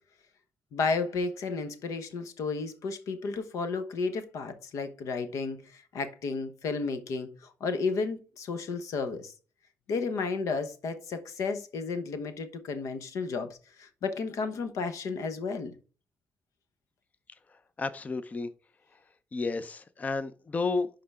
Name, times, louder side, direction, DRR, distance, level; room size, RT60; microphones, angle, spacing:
voice 1, 0.7-9.3 9.9-15.7, left 4 dB, 80° left, 1.0 m, -33 dB
voice 2, 17.8-18.5 19.3-20.9, left 3 dB, 30° left, 0.5 m, -31 dB
11.0 x 3.8 x 3.5 m
cardioid pair, 100°, 5 cm